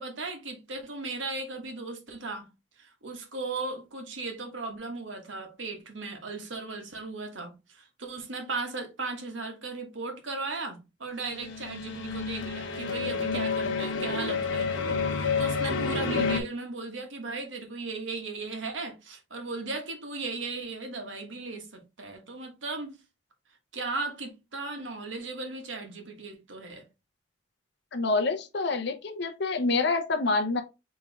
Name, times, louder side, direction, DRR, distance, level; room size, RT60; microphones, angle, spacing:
voice 1, 0.0-2.5 2.8-23.0 23.7-26.8, right 3 dB, 80° right, 1.3 m, -37 dB
sound 1, 11.3-16.4, left 4 dB, 85° left, 0.9 m, -29 dB
voice 2, 27.9-30.6, left 3 dB, 60° left, 0.7 m, -27 dB
4.4 x 3.2 x 3.4 m
head